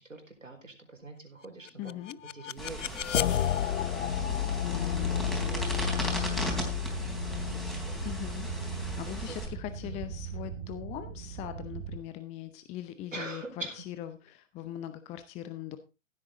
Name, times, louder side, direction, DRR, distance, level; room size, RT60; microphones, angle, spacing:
voice 1, 0.0-1.9 2.2-3.6 3.9-4.8 5.3-6.6 7.2-7.9 8.8-10.0 13.1-13.8, right 2 dB, 85° right, 3 dB, 4.5 m, -45 dB
sound 1, 1.7-10.6, left 10 dB, 75° left, 0.5 m, -32 dB
voice 2, 1.8-2.2 4.6-5.2 8.0-13.4 13.8-15.8, left 13 dB, 15° left, 11 dB, 0.7 m, -41 dB
sound 2, 2.6-9.5, equal, ahead, 3.6 m, -38 dB
sound 3, 4.9-12.0, right 8 dB, 35° right, 2.1 m, -39 dB
15.5 x 8.7 x 3.8 m, 0.28 s
figure-of-eight pair, 120°, 37 cm